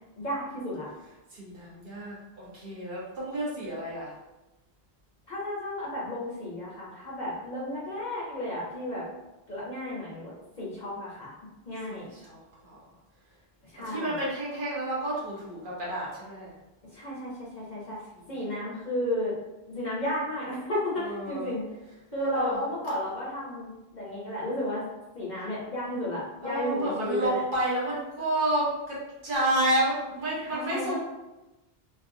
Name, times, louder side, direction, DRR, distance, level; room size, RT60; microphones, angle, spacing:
voice 1, 0.2-0.9 5.3-9.1 9.5-10.3 10.6-11.3 11.7-12.1 13.7-14.2 16.9-18.0 18.3-19.4 19.7-21.6 22.1-24.8 25.1-27.4 30.4-31.0, left 1 dB, 50° left, -6 dB, 0.8 m, -33 dB
voice 2, 1.3-4.1 11.9-12.8 13.8-16.5 18.1-18.2 21.0-21.5 22.1-22.6 26.4-31.0, right 1 dB, 55° right, -7 dB, 1.2 m, -30 dB
3.2 x 2.3 x 2.6 m, 1.0 s
omnidirectional pair, 1.1 m